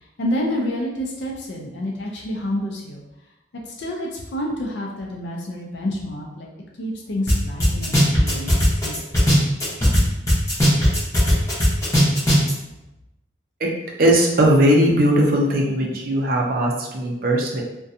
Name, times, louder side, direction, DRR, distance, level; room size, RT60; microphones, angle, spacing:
voice 1, 0.2-3.0 3.7-6.5 6.8-8.9, left 1 dB, 70° left, -1 dB, 0.4 m, -28 dB
sound 1, 7.3-7.4 7.6-10.0 10.3-12.5, equal, 15° left, 0.7 m, -16 dB
voice 2, 14.0-17.6, right 1 dB, 50° right, -1 dB, 0.4 m, -18 dB
2.5 x 2.2 x 2.6 m, 0.95 s
head